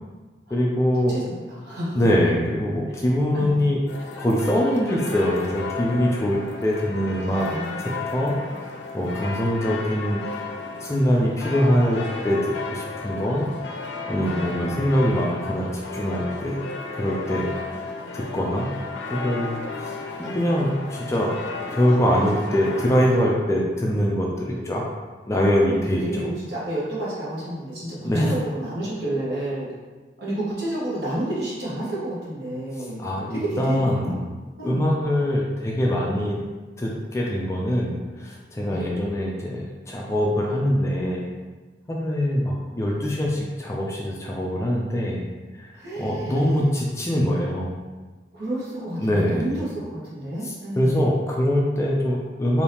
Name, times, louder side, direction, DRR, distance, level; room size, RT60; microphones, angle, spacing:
voice 1, 0.5-1.2 2.0-3.8 4.2-7.5 7.8-8.3 8.9-10.2 10.8-13.5 14.1-16.6 16.9-17.5 17.7-17.8 18.1-18.7 19.1-21.3 21.7-24.8 25.3-26.0 28.0-28.3 33.0-34.2 34.6-36.4 36.8-41.3 41.9-45.2 45.5-45.7 46.0-47.8 49.0-49.5 50.4-52.6, equal, 15° left, -2 dB, 0.3 m, -23 dB
voice 2, 1.1-2.0 3.3-3.5 7.2-7.8 8.5-8.6 14.2-14.6 25.6-29.7 30.2-33.0 33.3-34.1 34.6-34.8 38.7-38.9 45.7-46.7 48.3-51.0, right 1 dB, 65° right, -8 dB, 1.2 m, -30 dB
sound 1, 3.9-23.3, left 3 dB, 80° left, 0.4 m, -34 dB
3.4 x 2.6 x 2.8 m, 1.3 s
head